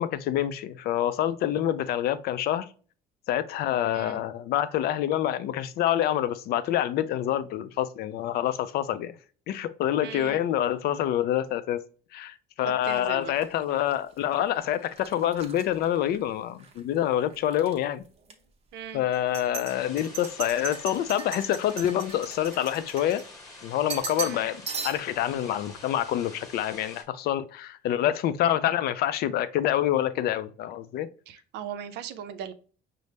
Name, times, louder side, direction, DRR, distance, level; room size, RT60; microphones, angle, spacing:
voice 1, 0.0-2.7 3.3-9.1 9.5-11.8 12.1-18.0 18.9-23.2 23.6-31.1, left 11 dB, 70° left, 0.4 m, -27 dB
voice 2, 10.0-10.4 12.7-13.3 18.7-19.1 24.2-24.5 31.3-32.5, right 9 dB, 80° right, 0.5 m, -38 dB
sound 1, 12.8-16.8 17.1-17.8 18.2-18.3 19.1-23.5 23.9-24.4 24.7-25.2, right 6 dB, 40° right, 0.7 m, -39 dB
sound 2, 19.7-27.0, left 2 dB, 20° left, 1.1 m, -47 dB
5.3 x 2.0 x 3.2 m
cardioid pair, 110°, 17 cm